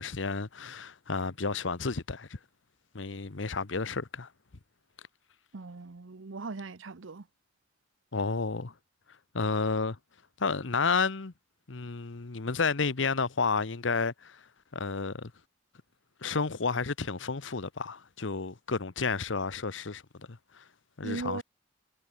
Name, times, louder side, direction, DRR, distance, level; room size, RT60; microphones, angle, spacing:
voice 1, 0.0-2.4 2.9-4.3 8.1-8.7 9.3-10.0 10.4-11.3 11.7-14.4 14.7-15.3 16.2-20.6 21.0-21.4, left 4 dB, 75° left, 1.0 m, -31 dB
voice 2, 5.5-7.3 21.0-21.4, right 3 dB, 85° right, 0.8 m, -38 dB
head